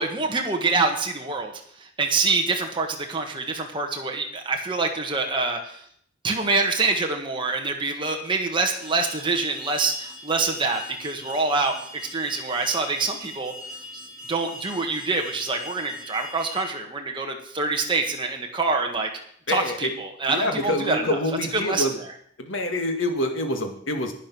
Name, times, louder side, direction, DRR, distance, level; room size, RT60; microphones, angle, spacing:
voice 1, 0.0-1.5 1.8-5.8 6.2-11.7 12.1-13.5 14.3-19.1 19.5-21.2 21.6-21.8, right 3 dB, 25° right, 2 dB, 1.6 m, -25 dB
Alarm, 8.8-16.6, left 2 dB, 5° right, 4.6 m, -41 dB
voice 2, 19.5-19.9 20.3-22.0 22.4-24.1, left 1 dB, 75° left, 4 dB, 2.0 m, -26 dB
11.0 x 9.6 x 6.2 m, 0.63 s
head